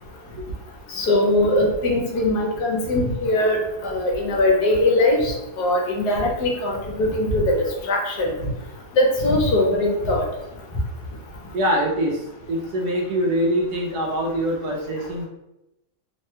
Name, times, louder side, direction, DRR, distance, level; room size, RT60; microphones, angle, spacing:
voice 1, 0.9-3.6 3.8-7.5 7.9-8.3 9.0-10.3, left 1 dB, 70° left, 0 dB, 1.2 m, -21 dB
voice 2, 11.5-15.3, equal, 70° right, -1 dB, 1.1 m, -24 dB
3.3 x 2.2 x 2.8 m, 0.89 s
omnidirectional pair, 1.8 m